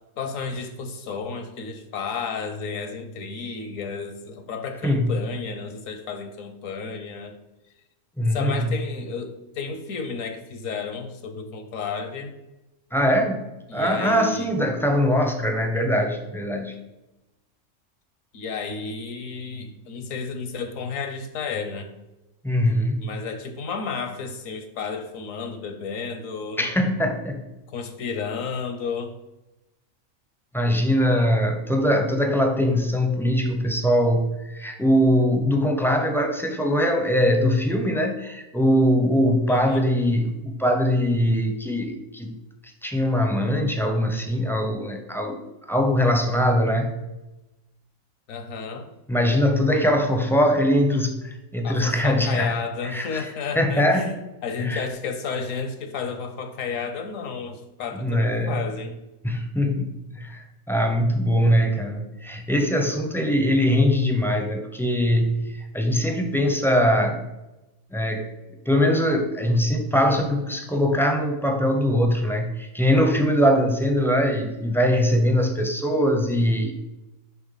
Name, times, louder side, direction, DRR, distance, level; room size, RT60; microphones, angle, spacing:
voice 1, 0.2-7.3 8.3-12.3 13.7-14.5 18.3-21.9 23.0-26.7 27.7-29.1 39.5-39.9 48.3-48.9 51.6-54.1 54.4-58.9, left 5 dB, 80° left, 7 dB, 1.3 m, -32 dB
voice 2, 4.8-5.2 8.2-8.8 12.9-13.4 13.7-16.7 22.4-23.1 26.6-27.5 30.5-42.4 42.8-45.4 45.7-47.0 49.1-53.3 53.5-54.1 54.6-54.8 57.9-58.7 59.2-67.2 67.9-68.3 68.7-76.7, equal, 5° left, 4 dB, 0.4 m, -22 dB
11.0 x 3.7 x 4.0 m, 0.98 s
omnidirectional pair, 1.4 m